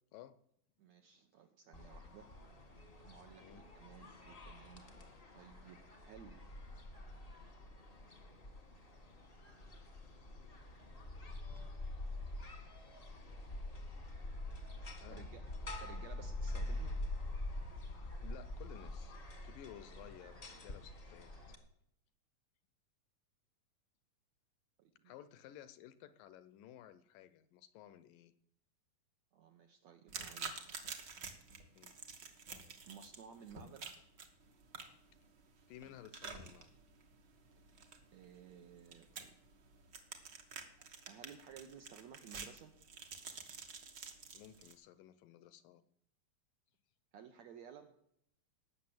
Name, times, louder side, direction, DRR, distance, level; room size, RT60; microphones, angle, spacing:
voice 1, 0.8-2.3 3.0-3.5 3.7-6.6 15.1-15.4 15.8-17.0 24.8-25.1 29.3-30.8 32.9-33.9 38.1-39.3 40.8-42.7 47.1-47.9, right 8 dB, 75° right, 6 dB, 1.7 m, -56 dB
sound 1, 1.7-21.5, left 1 dB, 35° left, 0.9 m, -46 dB
voice 2, 18.2-19.2 19.4-21.6 25.0-28.3 31.8-31.9 32.4-32.6 35.7-36.7 44.3-45.8, left 11 dB, 80° left, 14 dB, 2.1 m, -55 dB
sound 2, 30.1-44.7, right 5 dB, 55° right, 1.2 m, -50 dB
18.0 x 6.8 x 7.7 m, 0.73 s
omnidirectional pair, 4.1 m